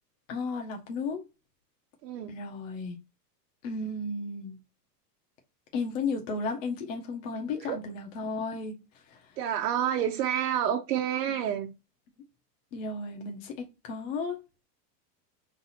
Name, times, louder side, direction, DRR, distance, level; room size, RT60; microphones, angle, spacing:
voice 1, 0.3-1.2 2.3-3.0 3.6-4.6 5.7-8.7 9.1-9.2 12.7-14.4, left 3 dB, 55° left, 1.4 m, -34 dB
voice 2, 2.0-2.4 7.6-7.8 9.4-11.7, right 10 dB, 85° right, 0.9 m, -29 dB
4.0 x 2.6 x 4.2 m
supercardioid pair, 175°, 47 cm